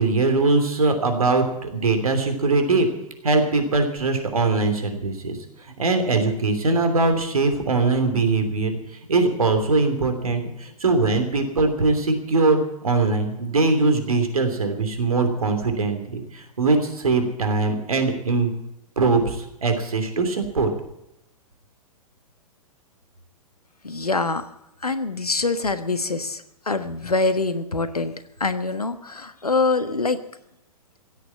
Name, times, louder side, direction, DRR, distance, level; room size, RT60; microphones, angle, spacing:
voice 1, 0.0-2.9 3.2-8.8 9.1-18.5 19.0-20.7, right 3 dB, 70° right, 7 dB, 3.1 m, -21 dB
voice 2, 23.8-24.5 24.8-28.1 28.4-30.2, left 3 dB, 85° left, 11 dB, 1.3 m, -24 dB
16.0 x 9.2 x 8.5 m, 0.84 s
figure-of-eight pair, 105°, 19 cm